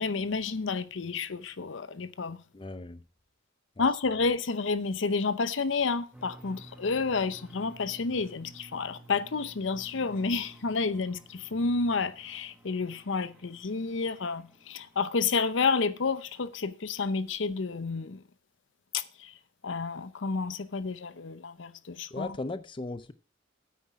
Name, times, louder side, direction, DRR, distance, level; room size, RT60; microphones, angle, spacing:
voice 1, 0.0-2.4 3.8-18.2 18.9-19.3 19.6-22.3, left 4 dB, 75° left, 0.7 m, -30 dB
voice 2, 2.5-3.0 3.8-3.9 22.1-23.1, left 2 dB, 25° left, 0.6 m, -37 dB
sound 1, 6.1-15.7, right 2 dB, 5° right, 1.3 m, -53 dB
9.4 x 8.4 x 4.8 m
head